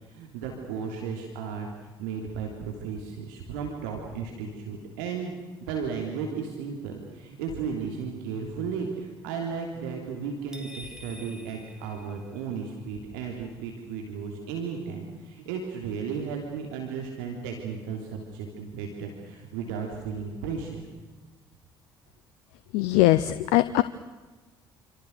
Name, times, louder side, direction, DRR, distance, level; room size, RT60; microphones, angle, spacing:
voice 1, 0.1-1.7 2.0-5.4 5.7-20.8, right 6 dB, 70° right, 2 dB, 3.2 m, -34 dB
sound 1, 10.5-12.7, equal, 5° right, 3.6 m, -47 dB
voice 2, 22.7-23.8, left 16 dB, 70° left, 14 dB, 0.8 m, -21 dB
28.0 x 26.5 x 6.6 m, 1.2 s
figure-of-eight pair, 50°, 12 cm